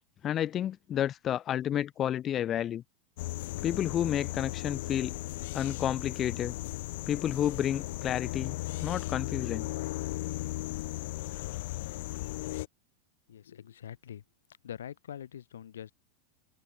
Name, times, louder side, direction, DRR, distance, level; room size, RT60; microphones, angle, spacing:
voice 1, 0.2-2.8 3.6-5.2 5.5-6.5 7.1-8.6 8.8-9.7, left 10 dB, 35° left, 0.8 m, -30 dB
sound 1, 3.2-12.7, left 18 dB, 65° left, 2.8 m, -36 dB
voice 2, 13.3-14.2 14.6-15.9, left 9 dB, 90° left, 4.8 m, -44 dB
open air
hypercardioid pair, 115°, 0 cm